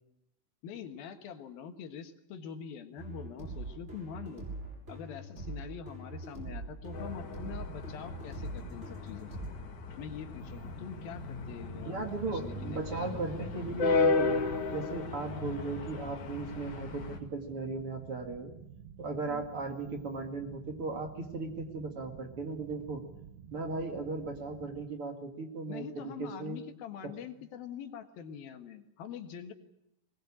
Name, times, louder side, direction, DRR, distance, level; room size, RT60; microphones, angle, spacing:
voice 1, 0.6-4.4 4.9-9.4 10.0-13.5 19.3-19.4 25.7-29.5, left 8 dB, 80° left, 7 dB, 3.4 m, -44 dB
sound 1, 3.0-9.5, right 2 dB, 15° right, 6.6 m, -42 dB
sound 2, 6.9-17.2, left 3 dB, 55° left, 3.4 m, -34 dB
sound 3, 10.4-24.9, right 7 dB, 85° right, 3.4 m, -51 dB
voice 2, 11.9-14.4 14.7-18.5 19.0-23.0 23.5-26.6 27.0-27.1, right 3 dB, 40° right, 4 dB, 2.8 m, -37 dB
22.0 x 21.0 x 8.7 m, 0.79 s
omnidirectional pair, 4.2 m